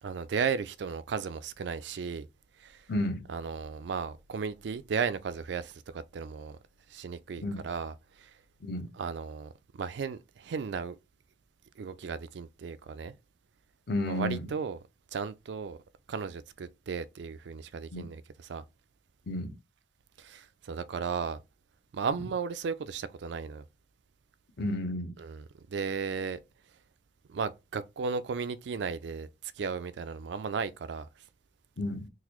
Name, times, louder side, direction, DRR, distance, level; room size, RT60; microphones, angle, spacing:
voice 1, 0.0-2.3 2.6-2.9 3.3-6.6 6.9-8.3 9.0-11.0 11.8-13.1 14.1-14.8 15.1-15.8 16.1-18.6 20.2-21.4 21.9-23.6 25.2-26.4 27.3-31.1, right 5 dB, 65° right, 0.4 m, -35 dB
voice 2, 2.9-3.3 7.4-7.6 8.6-8.9 13.9-14.5 17.9-18.1 19.3-19.5 24.6-25.1 31.8-32.1, left 1 dB, 60° left, 0.7 m, -32 dB
3.9 x 2.5 x 3.0 m
head